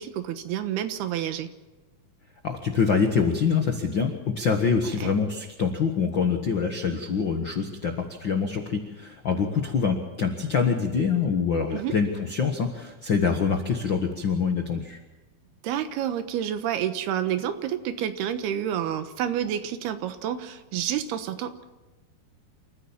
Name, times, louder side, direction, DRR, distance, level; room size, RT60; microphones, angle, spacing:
voice 1, 0.0-1.5 4.8-5.1 11.7-12.0 15.6-21.6, right 10 dB, 80° right, 9 dB, 3.1 m, -29 dB
voice 2, 2.4-15.0, left 5 dB, 80° left, 4 dB, 1.0 m, -25 dB
28.0 x 14.5 x 7.3 m, 1.1 s
omnidirectional pair, 4.7 m